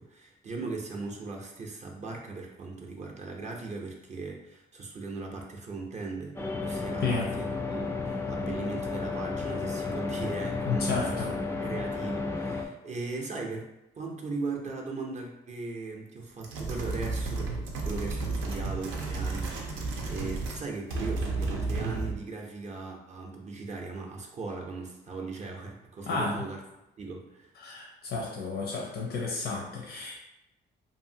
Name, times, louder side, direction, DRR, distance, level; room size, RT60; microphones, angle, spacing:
voice 1, 0.0-13.7 14.0-26.6 27.0-27.5, right 3 dB, 35° right, 0 dB, 0.5 m, -38 dB
sound 1, 6.4-12.7, left 3 dB, 15° left, 0.3 m, -32 dB
voice 2, 7.0-7.3 10.7-11.3 26.1-26.5 27.6-30.2, left 4 dB, 75° left, -2 dB, 0.6 m, -32 dB
sound 2, 16.4-20.6 20.9-22.2, right 3 dB, 85° right, 0.6 m, -32 dB
2.6 x 2.5 x 2.7 m, 0.90 s
cardioid pair, 90°, 20 cm